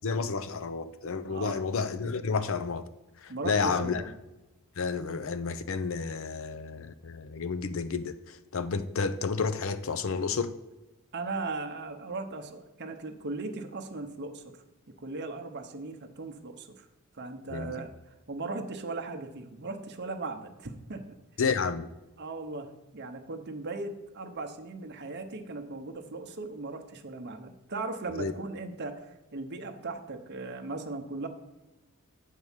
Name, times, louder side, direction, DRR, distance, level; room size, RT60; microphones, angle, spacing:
voice 1, 0.0-2.9 3.2-4.0 4.8-10.6 17.5-17.8 21.4-21.9 28.2-28.3, left 5 dB, 60° left, 0.5 m, -31 dB
voice 2, 1.3-1.6 3.3-4.1 11.1-16.9 17.1-17.9 18.3-21.0 22.2-31.3, right 3 dB, 50° right, 0.8 m, -38 dB
8.2 x 4.7 x 7.2 m
head